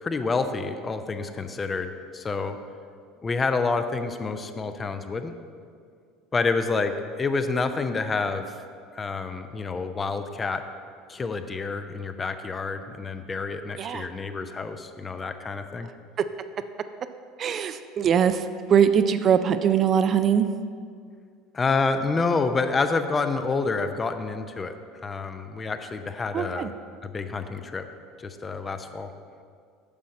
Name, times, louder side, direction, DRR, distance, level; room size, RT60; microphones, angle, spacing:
voice 1, 0.0-2.6 3.2-5.4 6.3-8.5 8.9-10.6 11.1-15.9 21.5-26.7 27.0-27.8 28.2-29.1, left 4 dB, 25° left, 9 dB, 0.5 m, -28 dB
voice 2, 13.8-14.1 16.2-16.3 17.4-20.5 26.3-26.7, right 8 dB, 40° right, 10 dB, 0.3 m, -22 dB
8.5 x 6.3 x 4.2 m, 2.2 s
figure-of-eight pair, 70°, 0 cm